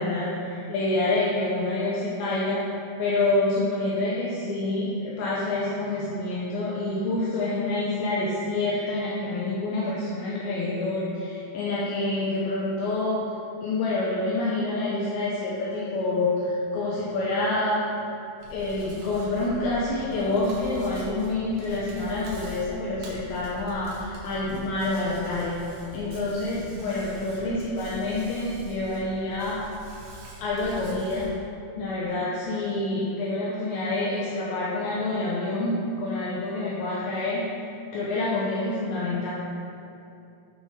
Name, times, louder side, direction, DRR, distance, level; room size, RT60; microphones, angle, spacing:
voice 1, 0.0-2.6 3.0-13.2 13.6-17.8 18.5-29.6 30.4-31.3 31.8-39.3, left 2 dB, 80° left, -6 dB, 2.6 m, -27 dB
Hands, 18.4-31.3, right 1 dB, 70° right, 1.9 m, -43 dB
7.5 x 6.8 x 4.0 m, 2.7 s
omnidirectional pair, 5.9 m